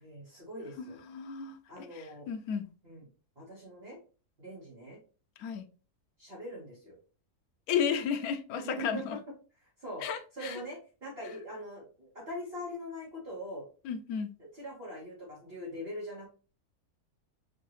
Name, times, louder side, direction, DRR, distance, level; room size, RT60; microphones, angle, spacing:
voice 1, 0.0-1.0 1.7-2.3 2.8-3.0 3.4-4.0 4.4-5.0 6.2-7.0 8.5-9.2 9.8-10.1 10.3-13.6 14.5-16.3, equal, 40° right, 1.6 m, -42 dB
voice 2, 0.8-2.7 5.4-5.6 7.7-9.2 10.0-10.6 13.8-14.3, left 7 dB, 75° left, 1.1 m, -33 dB
4.9 x 2.7 x 3.0 m
omnidirectional pair, 1.6 m